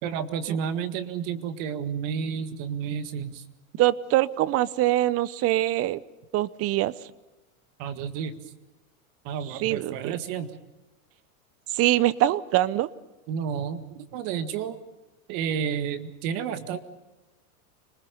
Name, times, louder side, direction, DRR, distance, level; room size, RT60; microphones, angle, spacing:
voice 1, 0.0-3.4 7.8-8.3 9.2-10.5 13.3-14.8 15.3-16.8, right 7 dB, 50° right, 10 dB, 1.9 m, -31 dB
voice 2, 3.8-6.0 6.3-6.9 9.5-10.2 11.7-12.9, right 15 dB, 35° right, 19 dB, 0.8 m, -23 dB
25.5 x 20.0 x 6.9 m, 1.1 s
supercardioid pair, 130°, 42 cm